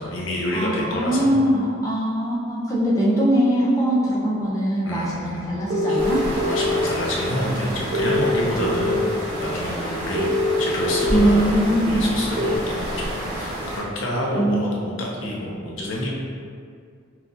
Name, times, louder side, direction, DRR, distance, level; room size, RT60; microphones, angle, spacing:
voice 1, 0.0-1.3 4.8-5.5 5.9-6.0 6.3-9.0 9.3-10.3 10.6-16.1, left 1 dB, 75° left, -3 dB, 0.7 m, -28 dB
voice 2, 0.5-6.2 8.5-8.6 11.1-12.1 14.4-14.7, right 1 dB, 15° left, -6 dB, 0.5 m, -21 dB
sound 1, 5.7-6.8 7.9-9.1 10.1-11.3 12.4-12.6, left 1 dB, 50° right, 0.4 m, -23 dB
sound 2, 6.0-13.8, equal, 30° right, 1.2 m, -30 dB
5.7 x 2.4 x 2.6 m, 2.2 s
head